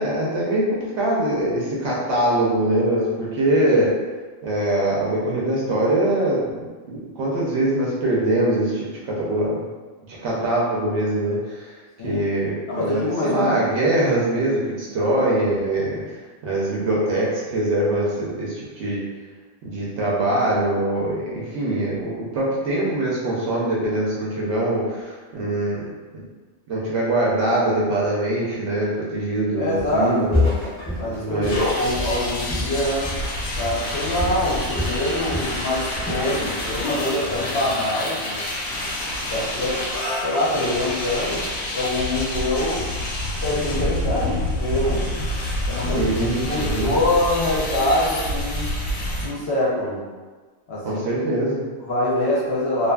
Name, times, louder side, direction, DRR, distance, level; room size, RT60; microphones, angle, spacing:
voice 1, 0.0-3.9 4.4-9.6 10.1-11.7 12.0-16.0 16.4-19.0 19.6-25.8 26.1-26.2 26.7-30.4 31.2-31.5 45.9-46.9 50.8-51.6, right 1 dB, 65° right, -5 dB, 0.8 m, -23 dB
voice 2, 12.7-13.5 29.5-30.1 31.0-33.1 33.6-38.4 39.3-39.8 40.2-41.5 41.7-42.9 43.4-45.1 45.7-48.7 49.2-50.1 50.7-51.2 51.8-52.9, left 1 dB, 60° left, -7 dB, 0.8 m, -24 dB
Walk footsteps, 29.8-30.1 30.3-33.3 33.6-33.9 34.2-35.6 35.9-36.3, left 2 dB, 20° left, 0.5 m, -27 dB
sound 1, 31.4-49.3, left 1 dB, 90° left, 1.0 m, -28 dB
2.5 x 2.4 x 2.2 m, 1.4 s
omnidirectional pair, 1.4 m